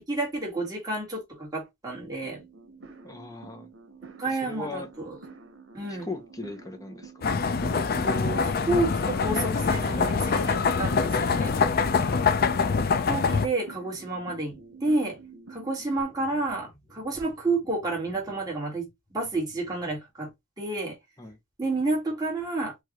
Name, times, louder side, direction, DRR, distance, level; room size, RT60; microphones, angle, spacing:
voice 1, 0.1-2.4 4.2-5.2 5.7-6.1 7.7-11.6 13.1-15.2 15.5-20.3 20.6-21.0 21.6-22.7, right 2 dB, 20° right, 1.8 m, -30 dB
sound 1, 2.2-16.0, right 4 dB, 90° right, 1.0 m, -48 dB
voice 2, 3.0-3.7 4.3-4.9 5.9-7.3 12.0-12.2 21.2-21.4, left 2 dB, 20° left, 0.9 m, -39 dB
sound 2, 7.2-13.5, left 5 dB, 50° left, 0.5 m, -24 dB
4.7 x 2.6 x 2.9 m
head